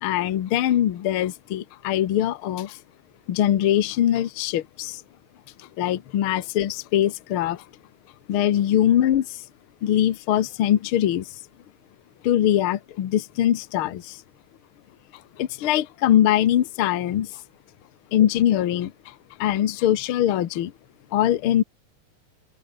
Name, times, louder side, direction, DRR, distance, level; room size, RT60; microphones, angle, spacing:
voice 1, 0.0-2.8 3.3-5.0 5.8-7.6 8.3-9.4 9.8-11.3 12.2-14.2 15.4-17.4 18.1-19.1 19.4-20.7 21.1-21.6, left 11 dB, 60° left, 1.4 m, -22 dB
open air
omnidirectional pair, 4.0 m